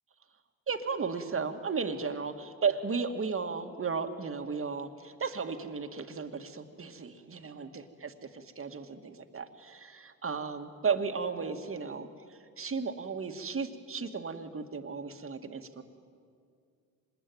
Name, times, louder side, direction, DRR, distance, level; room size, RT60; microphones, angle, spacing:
voice 1, 0.7-15.8, right 5 dB, 35° right, 6 dB, 2.1 m, -35 dB
25.5 x 21.0 x 9.5 m, 2.2 s
supercardioid pair, 75°, 36 cm